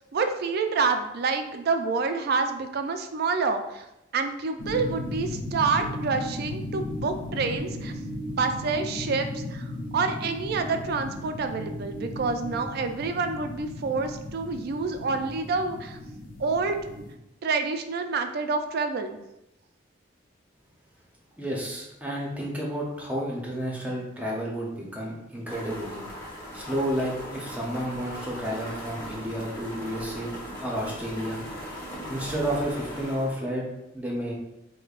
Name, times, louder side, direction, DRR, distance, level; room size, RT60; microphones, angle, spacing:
voice 1, 0.1-3.9 4.1-7.9 8.3-9.7 9.9-16.0 16.4-16.8 17.4-19.2, right 4 dB, 55° right, 7 dB, 0.3 m, -28 dB
sound 1, 4.6-17.1, left 1 dB, 45° left, 0.5 m, -36 dB
voice 2, 21.4-26.0 26.5-30.3 30.6-31.4 32.1-33.7 33.9-34.3, equal, 10° right, -3 dB, 0.7 m, -31 dB
sound 2, 25.5-33.4, equal, 15° left, 1.0 m, -39 dB
5.2 x 2.1 x 2.4 m, 0.90 s
head